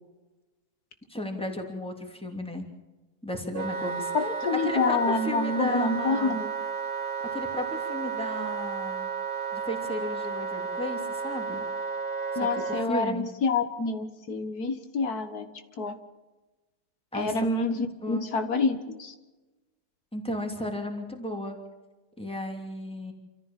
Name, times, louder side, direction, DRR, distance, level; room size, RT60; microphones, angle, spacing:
voice 1, 1.1-2.6 3.2-4.3 4.6-6.4 7.3-9.1 9.5-11.7 12.3-13.3 17.1-17.5 17.7-18.3 20.1-21.6 22.2-23.1, left 1 dB, 5° left, 2 dB, 3.0 m, -34 dB
Wind instrument woodwind instrument, 3.5-12.9, right 5 dB, 35° right, 1.5 m, -32 dB
voice 2, 4.1-6.5 12.4-15.5 15.8-16.0 17.1-19.1, left 3 dB, 70° left, 8 dB, 2.0 m, -27 dB
28.5 x 14.5 x 7.4 m, 1.2 s
omnidirectional pair, 1.7 m